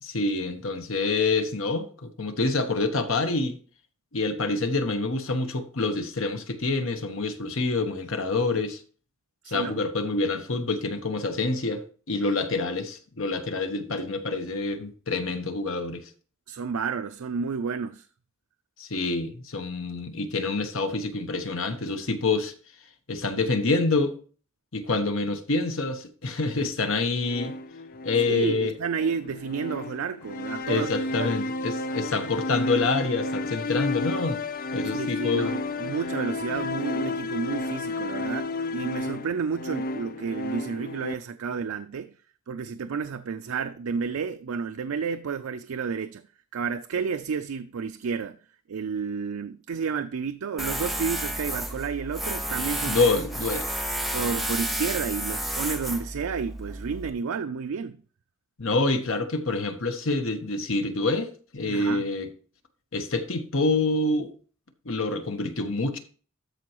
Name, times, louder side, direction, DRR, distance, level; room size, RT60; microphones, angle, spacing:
voice 1, 0.0-3.6 4.1-8.8 9.5-11.8 12.1-16.1 18.8-22.5 23.1-24.1 24.7-27.5 28.0-28.7 30.7-34.4 34.7-35.5 52.9-53.6 58.6-62.3 62.9-64.3 64.8-66.0, left 3 dB, 70° left, 1.2 m, -27 dB
voice 2, 9.4-9.9 16.5-18.1 28.3-31.3 34.8-42.1 42.5-46.2 46.5-48.4 48.7-53.0 54.1-58.0 61.6-62.1, right 5 dB, 85° right, 0.4 m, -31 dB
sound 1, 27.2-41.1, left 2 dB, 45° left, 0.4 m, -32 dB
Tools, 50.6-57.1, right 1 dB, ahead, 0.9 m, -31 dB
13.5 x 4.5 x 3.0 m
head